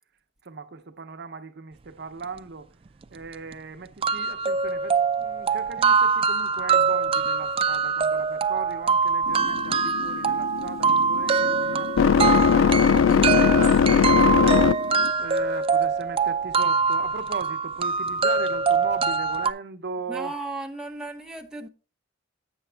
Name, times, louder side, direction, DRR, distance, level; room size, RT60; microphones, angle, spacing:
voice 1, 0.4-2.7 3.1-11.9 12.5-20.4, right 4 dB, 55° right, 0.7 m, -37 dB
sound 1, 3.0-3.1 3.5-3.6 4.0-19.5, right 5 dB, 30° right, 0.3 m, -24 dB
sound 2, 9.3-15.1, left 7 dB, 85° left, 0.3 m, -21 dB
voice 2, 20.1-21.7, right 2 dB, 5° right, 0.8 m, -35 dB
8.4 x 7.1 x 3.3 m
head